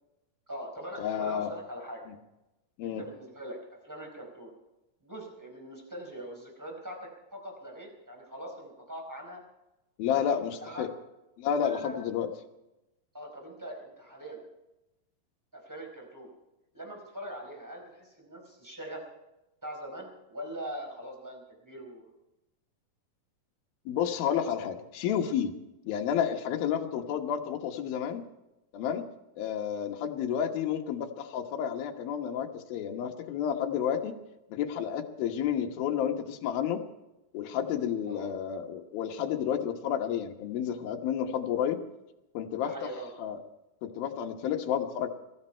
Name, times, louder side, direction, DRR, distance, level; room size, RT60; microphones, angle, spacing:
voice 1, 0.5-2.0 2.8-3.6 3.8-4.5 5.0-7.0 7.3-9.4 10.1-10.2 10.6-10.9 11.6-12.0 13.1-14.4 15.5-16.3 16.7-19.0 19.6-22.1 38.1-38.3 42.6-43.1, right 1 dB, 5° right, 1 dB, 4.4 m, -42 dB
voice 2, 1.0-1.5 2.1-2.2 2.8-3.0 10.0-10.9 11.4-12.3 23.9-25.5 25.8-28.2 28.7-29.0 29.4-34.1 34.5-36.8 37.3-41.8 42.3-42.9 43.2-43.4 43.8-45.1, left 8 dB, 75° left, 4 dB, 3.0 m, -31 dB
22.5 x 14.0 x 4.5 m, 0.95 s
omnidirectional pair, 4.3 m